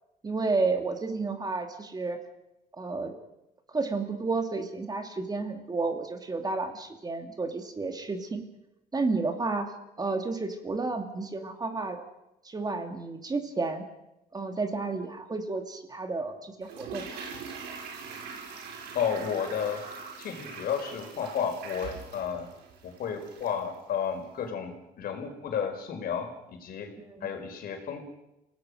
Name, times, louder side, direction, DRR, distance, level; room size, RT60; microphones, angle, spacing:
voice 1, 0.2-2.2 2.8-3.2 3.7-8.5 8.9-12.0 12.4-13.8 14.3-17.2 27.0-27.3, right 3 dB, 25° right, 6 dB, 2.6 m, -31 dB
Toilet flush, 16.6-23.7 24.0-24.1, right 5 dB, 85° right, 5.2 m, -43 dB
voice 2, 18.9-19.8 20.2-22.5 22.8-26.9 27.2-28.0, left 7 dB, 60° left, 4 dB, 5.0 m, -32 dB
28.5 x 18.0 x 6.5 m, 0.90 s
cardioid pair, 110°, 17 cm